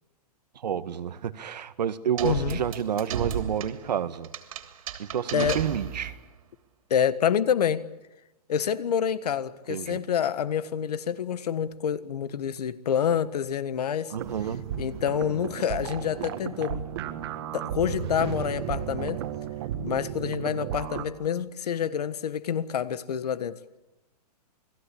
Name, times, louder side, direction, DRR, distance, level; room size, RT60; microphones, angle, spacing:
voice 1, 0.6-4.3 5.0-6.2 9.7-10.0 14.1-14.9, right 8 dB, 85° right, 1.7 m, -30 dB
voice 2, 2.2-2.6 5.3-5.6 6.9-7.9 8.5-14.2 14.8-16.8 17.5-19.2 19.8-23.6, left 8 dB, 70° left, 1.6 m, -27 dB
sound 1, 2.2-6.3, right 8 dB, 60° right, 3.2 m, -34 dB
sound 2, 14.2-21.0, right 10 dB, 40° right, 1.7 m, -34 dB
29.0 x 21.0 x 8.6 m
hypercardioid pair, 170°, 21 cm